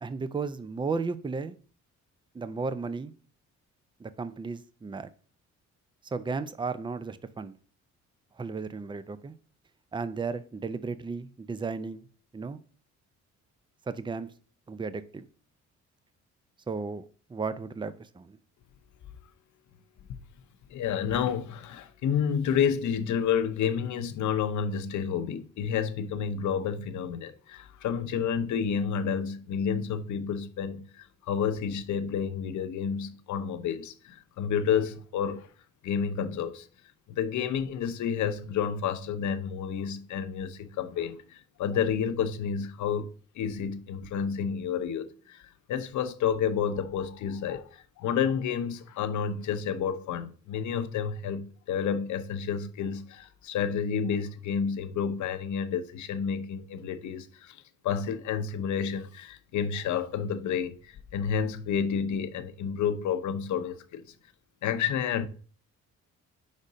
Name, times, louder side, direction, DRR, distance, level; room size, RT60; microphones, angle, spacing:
voice 1, 0.0-1.5 2.3-3.1 4.0-5.1 6.1-7.5 8.4-9.4 9.9-12.0 12.3-12.6 13.9-14.3 14.7-15.3 16.7-17.0 17.3-18.4, right 4 dB, 15° right, 0.5 m, -34 dB
voice 2, 20.7-35.5 35.8-36.7 37.1-64.0 64.6-65.3, left 7 dB, 75° left, 0.8 m, -30 dB
5.1 x 4.1 x 4.9 m
cardioid pair, 90°, 30 cm